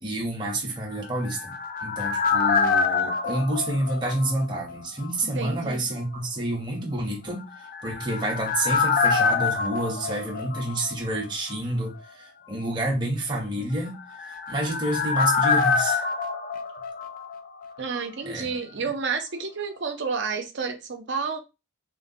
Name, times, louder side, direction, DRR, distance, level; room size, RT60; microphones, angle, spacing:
voice 1, 0.0-16.1 18.3-18.5, right 1 dB, 20° right, 0.7 m, -29 dB
sound 1, 0.9-4.8 5.0-5.1 7.5-11.3 11.5-11.6 13.9-17.7 18.0-18.1, left 5 dB, 40° left, 0.3 m, -26 dB
voice 2, 5.4-5.9 17.8-21.4, right 5 dB, 60° right, 0.6 m, -30 dB
3.1 x 2.2 x 2.5 m
head